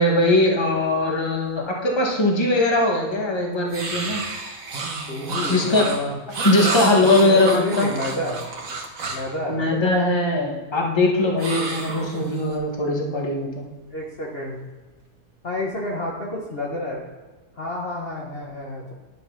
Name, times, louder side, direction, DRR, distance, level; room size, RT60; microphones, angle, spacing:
voice 1, 0.0-4.2 5.5-5.9 6.4-7.9 9.5-13.6, left 2 dB, 20° left, 0 dB, 1.4 m, -20 dB
sound 1, 3.7-9.3 11.4-12.6, right 3 dB, 60° right, 1.7 m, -30 dB
voice 2, 5.1-6.1 6.6-6.7 7.0-8.4 9.1-9.6 13.9-14.6 15.4-17.1 17.6-18.9, left 1 dB, 40° left, -2 dB, 1.4 m, -29 dB
11.0 x 5.2 x 5.8 m, 1.3 s
omnidirectional pair, 1.6 m